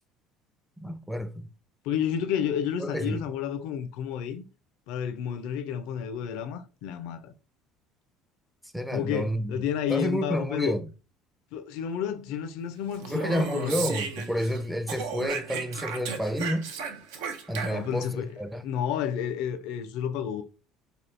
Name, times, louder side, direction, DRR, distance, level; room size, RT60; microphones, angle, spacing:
voice 1, 0.8-1.5 2.8-3.2 8.7-10.9 13.1-16.7 17.5-18.6, equal, 5° right, 0.4 m, -30 dB
voice 2, 1.8-4.4 4.9-7.3 8.9-10.8 11.5-13.9 17.7-18.3 18.6-20.4, left 8 dB, 75° left, 0.4 m, -31 dB
Speech, 12.9-14.6 14.9-18.0, right 6 dB, 80° right, 0.5 m, -35 dB
3.4 x 2.3 x 2.5 m
hypercardioid pair, 80°, 0 cm